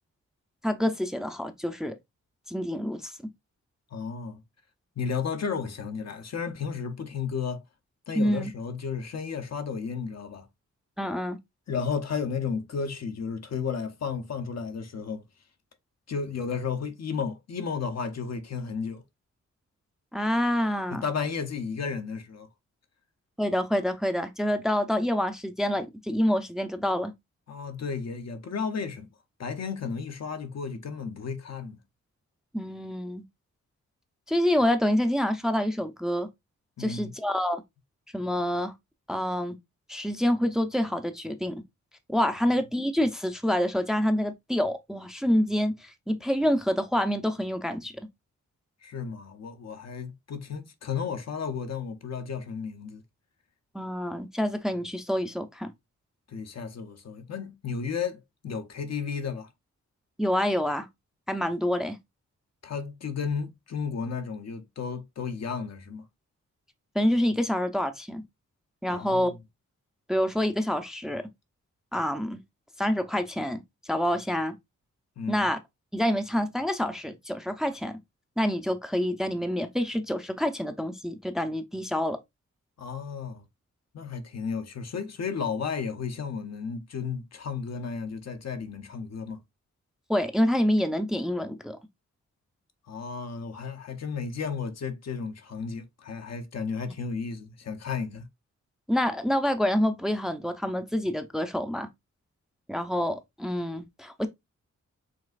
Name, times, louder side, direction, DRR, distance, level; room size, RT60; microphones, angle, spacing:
voice 1, 0.6-1.9 2.5-3.1 8.2-8.5 11.0-11.4 20.1-21.0 23.4-27.1 32.5-33.2 34.3-36.3 36.8-37.6 38.1-38.7 39.1-39.5 39.9-41.6 42.1-47.9 53.7-55.7 60.2-60.9 61.3-62.0 66.9-68.2 68.8-69.3 70.1-71.3 71.9-72.4 72.8-73.6 73.9-74.5 75.3-75.6 75.9-78.0 78.4-82.2 90.1-91.8 98.9-101.9 102.7-104.3, equal, ahead, 0.6 m, -27 dB
voice 2, 3.9-4.4 5.0-7.6 8.1-10.5 11.7-15.2 16.1-19.0 20.9-22.5 27.5-29.1 29.4-31.8 36.8-37.1 48.8-53.0 56.3-59.5 62.6-66.1 68.9-69.4 75.2-75.5 82.8-83.4 83.9-89.4 92.9-98.3, left 5 dB, 60° left, 0.7 m, -33 dB
5.2 x 3.2 x 2.4 m
cardioid pair, 75°, 30 cm